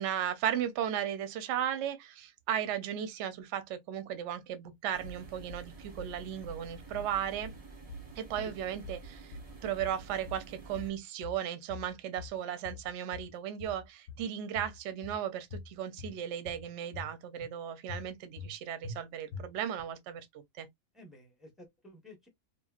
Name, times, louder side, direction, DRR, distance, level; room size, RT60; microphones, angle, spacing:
voice 1, 0.0-7.5 8.2-20.7, right 10 dB, 65° right, 0.8 m, -36 dB
sound 1, 4.9-10.9, right 3 dB, 35° right, 0.7 m, -50 dB
sound 2, 5.0-5.6 6.0-6.6 6.9-7.6 7.9-8.6 8.8-9.5 9.8-10.5 10.7-11.4 11.7-12.4 12.6-13.3 13.6-14.3 14.6-15.2 15.5-16.2 16.5-17.1 17.4-17.5 17.9-18.5 18.8-19.0 19.3-19.8, left 3 dB, 80° left, 1.1 m, -45 dB
voice 2, 20.9-22.3, left 1 dB, ahead, 0.7 m, -52 dB
3.0 x 2.4 x 2.3 m
omnidirectional pair, 1.5 m